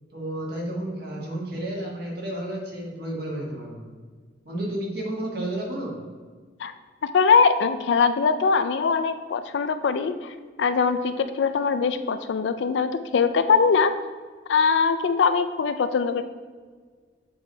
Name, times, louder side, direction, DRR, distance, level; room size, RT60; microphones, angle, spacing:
voice 1, 0.1-3.9 4.4-6.0, right 1 dB, 55° right, -2 dB, 1.5 m, -31 dB
voice 2, 7.1-13.9 14.5-16.2, left 5 dB, 65° left, 10 dB, 0.4 m, -22 dB
7.6 x 3.2 x 4.5 m, 1.5 s
head